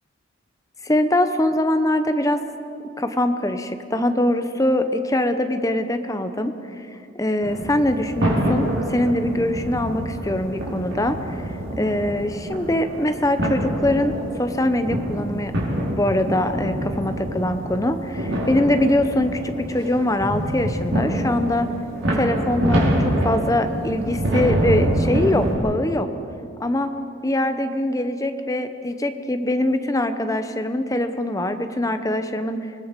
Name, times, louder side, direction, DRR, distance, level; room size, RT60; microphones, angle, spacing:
voice 1, 0.8-2.4 3.0-6.9 7.1-15.5 15.9-21.7 22.2-26.1 26.6-26.9 27.2-32.7, left 1 dB, 15° left, 8 dB, 0.8 m, -23 dB
sound 1, 7.4-25.5, right 1 dB, 65° right, 4.9 m, -26 dB
25.5 x 20.5 x 5.3 m, 2.6 s
head